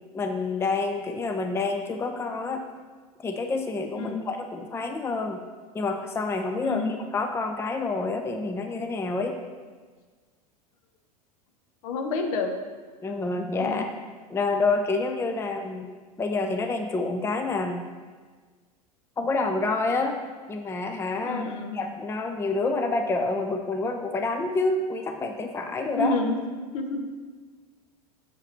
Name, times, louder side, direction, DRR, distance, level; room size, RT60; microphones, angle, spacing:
voice 1, 0.1-2.6 3.2-5.4 5.7-9.4 13.0-13.9 14.3-15.9 16.2-17.8 19.2-20.2 20.5-21.5 21.7-26.2, left 3 dB, 15° left, 5 dB, 0.5 m, -28 dB
voice 2, 6.6-6.9 11.8-12.5 13.6-13.8 21.2-21.8 25.9-27.0, left 3 dB, 60° left, 5 dB, 0.9 m, -29 dB
6.7 x 4.8 x 4.3 m, 1.5 s
hypercardioid pair, 85°, 19 cm